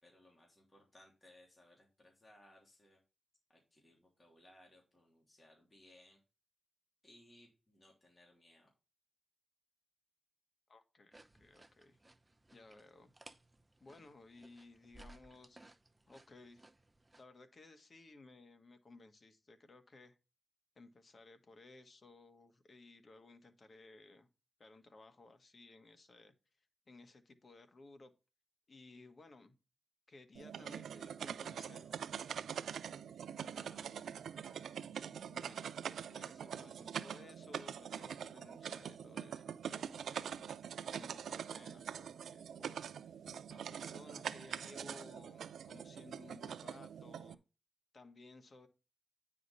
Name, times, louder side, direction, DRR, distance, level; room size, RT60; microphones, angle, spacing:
voice 1, 0.0-3.0 3.5-6.2 7.0-8.7 33.4-34.0, left 1 dB, 25° left, 3.1 m, -64 dB
voice 2, 10.7-12.0 12.5-13.1 13.8-15.8 16.1-16.7 17.1-20.2 20.8-24.3 24.6-26.3 26.9-28.1 28.7-29.5 30.1-32.1 35.3-35.7 36.1-40.6 40.9-42.9 43.5-47.4 47.9-48.7, left 2 dB, 45° left, 1.4 m, -58 dB
sound 1, 11.1-17.2, right 2 dB, 15° right, 0.7 m, -61 dB
sound 2, 30.3-47.3, right 8 dB, 90° right, 0.4 m, -44 dB
9.3 x 5.1 x 4.1 m
cardioid pair, 90°, 0 cm